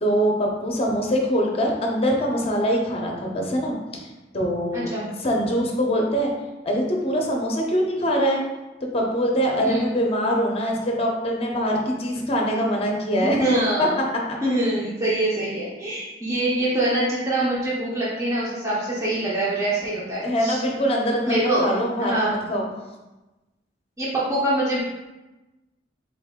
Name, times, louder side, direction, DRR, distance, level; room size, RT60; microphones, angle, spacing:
voice 1, 0.0-4.0 4.3-4.9 5.2-6.3 6.6-8.4 8.9-13.4 13.8-13.9 20.2-22.7, equal, 35° left, 0 dB, 0.6 m, -23 dB
voice 2, 4.7-5.1 9.6-9.8 13.2-14.0 14.4-20.6 21.3-21.6 22.0-22.3 24.0-24.8, right 1 dB, 20° right, -8 dB, 0.6 m, -24 dB
3.9 x 2.6 x 3.6 m, 1.1 s
head